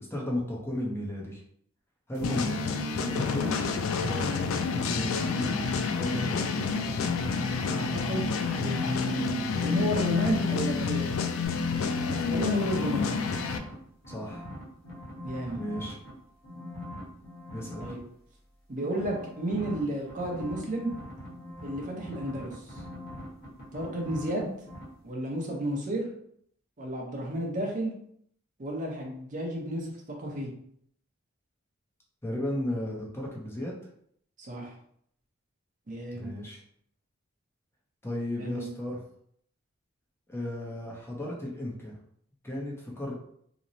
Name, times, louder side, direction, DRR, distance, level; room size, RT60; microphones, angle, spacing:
voice 1, 0.0-1.4 2.1-2.6 3.0-3.7 4.0-5.6 5.9-6.6 12.3-12.9 14.1-14.5 15.5-15.9 17.5-17.9 32.2-33.7 36.1-36.6 38.0-39.0 40.3-41.9 42.4-43.1, left 1 dB, 10° left, -3 dB, 0.5 m, -34 dB
sound 1, 2.2-13.6, left 5 dB, 75° left, 0.3 m, -29 dB
voice 2, 7.6-11.0 12.1-13.2 15.2-15.6 17.8-18.0 18.7-20.9 21.6-22.8 23.7-24.5 25.0-26.1 26.8-27.9 28.6-29.9 30.2-30.5 34.4-34.7 35.9-36.3 38.4-38.7, right 1 dB, 40° right, -1 dB, 0.6 m, -32 dB
sound 2, 11.4-13.7 14.0-16.1 16.4-17.9 18.8-24.4 24.7-24.8, left 1 dB, 50° left, 1.1 m, -42 dB
2.9 x 2.0 x 2.6 m, 0.68 s
head